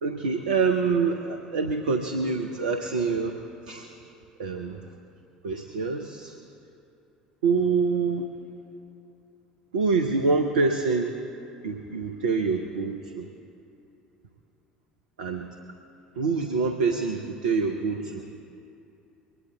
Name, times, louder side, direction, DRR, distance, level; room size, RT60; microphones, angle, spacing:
voice 1, 0.0-3.9 4.4-5.0 5.4-6.4 7.4-8.3 9.7-11.2 11.6-13.3 15.2-15.6 16.2-18.3, right 4 dB, 70° right, 4 dB, 0.7 m, -26 dB
23.0 x 20.0 x 2.3 m, 2.7 s
figure-of-eight pair, 60°, 4 cm